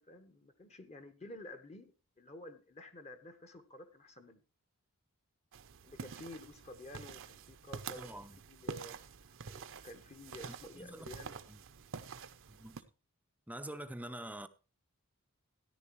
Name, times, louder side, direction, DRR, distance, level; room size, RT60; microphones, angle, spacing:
voice 1, 0.0-4.4 5.8-8.9 9.4-11.4, left 1 dB, 30° left, 1.1 m, -51 dB
sound 1, 5.5-12.8, right 5 dB, 60° right, 0.7 m, -47 dB
voice 2, 8.0-8.4 10.5-11.1 11.5-11.6 12.5-12.8 13.5-14.5, right 1 dB, 5° right, 0.6 m, -46 dB
13.5 x 10.0 x 3.1 m
head